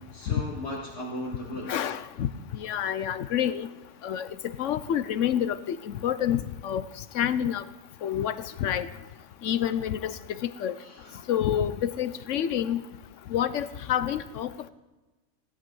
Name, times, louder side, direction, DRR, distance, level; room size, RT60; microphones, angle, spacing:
voice 1, 0.1-1.8 10.8-11.2, left 1 dB, 60° left, -3 dB, 2.3 m, -36 dB
voice 2, 1.7-3.7 4.0-4.3 4.6-6.8 7.1-7.6 8.0-8.9 9.4-10.1 10.6-10.7 11.3-12.8 13.3-14.7, left 10 dB, 80° left, 14 dB, 1.1 m, -28 dB
17.0 x 11.5 x 5.4 m, 1.2 s
omnidirectional pair, 1.3 m